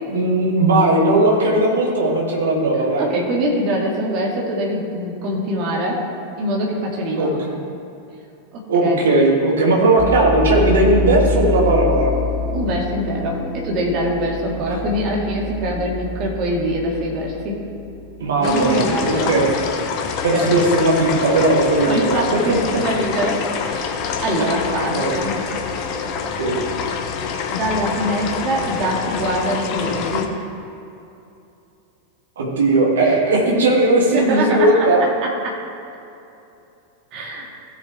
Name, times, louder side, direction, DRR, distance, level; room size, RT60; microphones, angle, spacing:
voice 1, 0.1-3.1 7.2-7.6 8.7-12.1 14.4-14.5 18.2-19.4 20.2-22.2 24.9-25.2 26.4-26.6 32.4-35.0, right 2 dB, 65° right, -2 dB, 2.4 m, -17 dB
voice 2, 3.0-6.1 6.4-7.3 8.5-9.0 12.5-17.6 18.4-19.3 20.3-20.5 21.9-25.3 27.5-30.3 34.1-35.6 37.1-37.5, equal, 40° right, -1 dB, 2.3 m, -24 dB
sound 1, 10.0-18.7, left 2 dB, ahead, 1.8 m, -26 dB
sound 2, 18.4-30.3, left 6 dB, 40° left, 1.0 m, -26 dB
16.0 x 7.3 x 3.4 m, 2.7 s
figure-of-eight pair, 90°, 0 cm